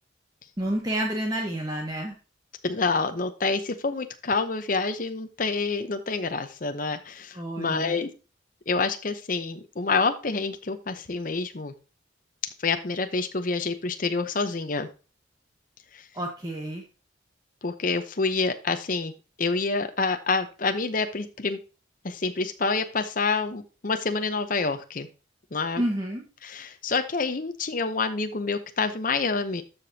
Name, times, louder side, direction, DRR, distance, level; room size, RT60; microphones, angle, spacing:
voice 1, 0.6-2.1 7.3-8.0 16.1-16.8 25.8-26.2, right 1 dB, 20° right, 0 dB, 1.2 m, -29 dB
voice 2, 2.6-8.1 8.7-11.7 12.6-14.9 15.9-16.0 17.6-19.1 19.4-21.6 22.0-25.1 25.5-25.8 26.4-29.6, left 4 dB, 45° left, 8 dB, 0.8 m, -27 dB
13.0 x 5.1 x 2.8 m, 0.33 s
head